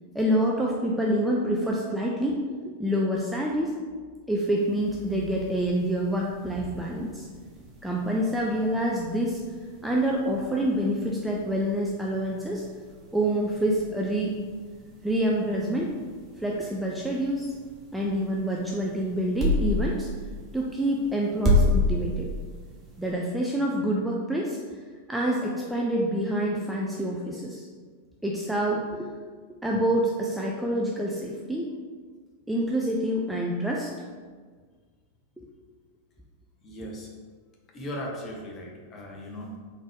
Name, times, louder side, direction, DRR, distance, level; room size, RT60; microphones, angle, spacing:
voice 1, 0.1-3.7 4.3-7.3 7.8-9.4 9.8-12.6 13.1-14.4 15.0-15.9 16.4-17.5 17.9-20.1 20.5-22.3 23.0-24.6 25.1-27.7 28.2-29.1 29.6-31.7 32.5-33.9 35.4-35.5, right 1 dB, 5° right, -3 dB, 0.4 m, -27 dB
sound 1, 4.5-23.1, left 2 dB, 25° right, 0.9 m, -33 dB
voice 2, 36.6-37.2 37.7-39.6, equal, 25° left, -1 dB, 0.9 m, -38 dB
3.8 x 3.5 x 3.6 m, 1.5 s
figure-of-eight pair, 90°, 0 cm